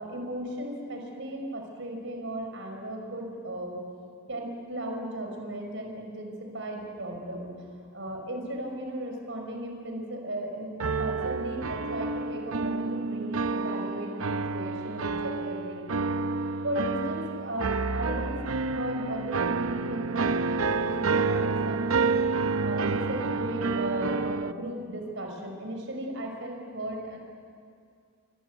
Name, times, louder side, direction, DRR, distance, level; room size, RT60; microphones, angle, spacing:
voice 1, 0.0-3.8 4.3-15.8 16.6-27.2, right 1 dB, 60° right, 2 dB, 5.6 m, -36 dB
sound 1, 10.8-24.5, right 4 dB, 90° right, 0.8 m, -29 dB
29.0 x 25.0 x 8.3 m, 2.3 s
head